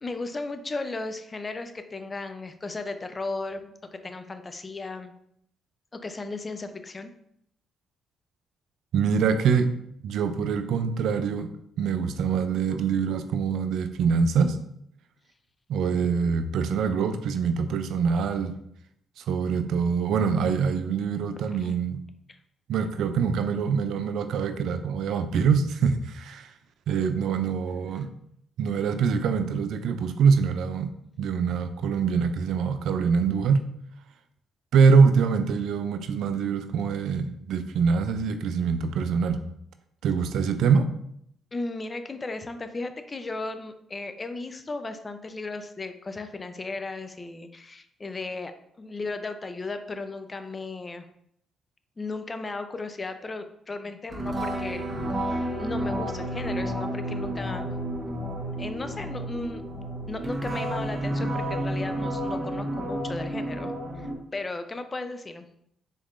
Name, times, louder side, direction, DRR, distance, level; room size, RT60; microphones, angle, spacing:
voice 1, 0.0-5.1 5.9-7.1 22.3-22.4 41.5-48.5 48.8-51.1 52.0-54.9 55.2-57.7 58.5-59.6 60.1-64.1 64.3-65.5, left 3 dB, 30° left, 8 dB, 0.4 m, -35 dB
voice 2, 8.9-9.7 10.0-11.5 11.8-14.6 15.7-18.5 19.2-22.0 22.7-26.5 26.9-28.1 28.6-30.9 31.2-33.7 34.7-39.4 40.0-40.9, right 5 dB, 80° right, 9 dB, 0.3 m, -24 dB
sound 1, 54.1-64.1, right 1 dB, 30° right, 1.0 m, -31 dB
4.0 x 3.5 x 2.4 m, 0.72 s
supercardioid pair, 65°, 0 cm